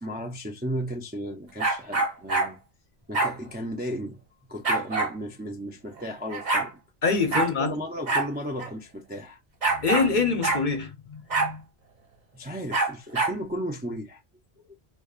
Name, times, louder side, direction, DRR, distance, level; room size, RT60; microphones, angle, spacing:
voice 1, 0.0-2.6 3.1-4.2 4.5-6.7 7.3-9.4 12.3-14.2 14.6-14.8, equal, 15° right, 0.4 m, -34 dB
sound 1, 1.6-2.5 3.1-3.3 4.6-5.1 6.0-6.1 6.3-6.7 7.3-7.5 8.1-8.3 8.6-8.7 9.6-10.1 10.4-10.6 11.3-11.5 12.7-13.4, right 3 dB, 45° right, 1.1 m, -25 dB
voice 2, 7.0-7.7 9.7-11.6, left 4 dB, 50° left, 0.8 m, -25 dB
5.1 x 2.3 x 2.4 m
omnidirectional pair, 1.1 m